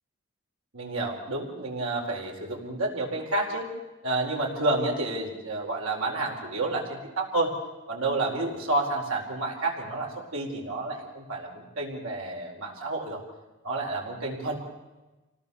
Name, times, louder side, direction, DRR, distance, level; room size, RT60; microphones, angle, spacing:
voice 1, 0.7-3.7 4.0-7.5 7.9-13.2 13.6-14.6, right 2 dB, 75° right, 0 dB, 4.7 m, -30 dB
26.0 x 18.0 x 7.1 m, 1.1 s
head